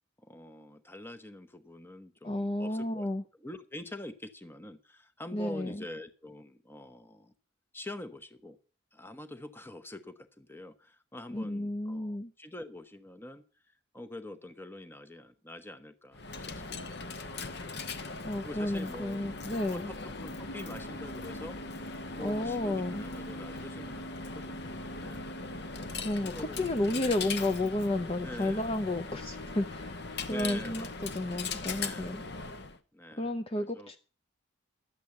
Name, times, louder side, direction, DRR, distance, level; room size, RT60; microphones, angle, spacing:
voice 1, 0.2-3.1 3.4-7.3 7.7-8.6 8.9-13.4 13.9-17.0 17.3-17.5 18.4-19.3 19.7-21.6 22.2-25.3 26.2-26.9 28.2-28.8 30.3-31.5 31.8-32.2 32.9-34.0, left 1 dB, 10° left, 1.0 m, -45 dB
voice 2, 2.2-3.2 5.3-5.8 11.3-12.3 18.2-19.9 22.2-23.0 26.0-32.2 33.2-34.0, left 1 dB, 30° left, 0.6 m, -32 dB
Coin (dropping), 16.1-32.8, left 3 dB, 55° left, 1.0 m, -39 dB
12.0 x 8.2 x 7.0 m
head